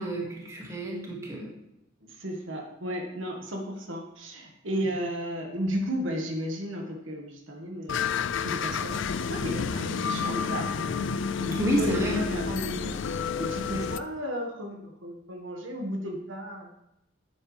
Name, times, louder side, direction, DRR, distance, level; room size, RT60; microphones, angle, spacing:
voice 1, 0.0-1.5 4.8-4.9 11.6-12.3 13.7-13.8, equal, 15° right, -2 dB, 1.9 m, -29 dB
voice 2, 2.0-8.0 8.4-11.0 11.3-16.7, equal, 75° right, 1 dB, 1.6 m, -34 dB
sound 1, 7.9-14.0, left 6 dB, 65° left, 0.4 m, -30 dB
10.0 x 8.8 x 3.3 m, 0.86 s
head